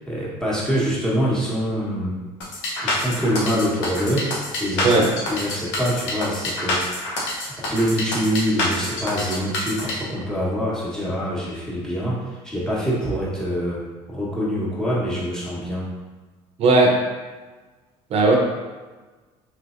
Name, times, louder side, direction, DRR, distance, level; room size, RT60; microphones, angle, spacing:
voice 1, 0.0-2.1 2.8-7.1 7.5-15.9, equal, 5° left, -7 dB, 1.2 m, -25 dB
sound 1, 2.4-9.9, left 1 dB, 85° left, 0.9 m, -26 dB
voice 2, 4.8-5.1 16.6-17.0 18.1-18.4, right 2 dB, 50° right, 1 dB, 0.7 m, -16 dB
3.2 x 3.1 x 2.5 m, 1.3 s
supercardioid pair, 85°, 13 cm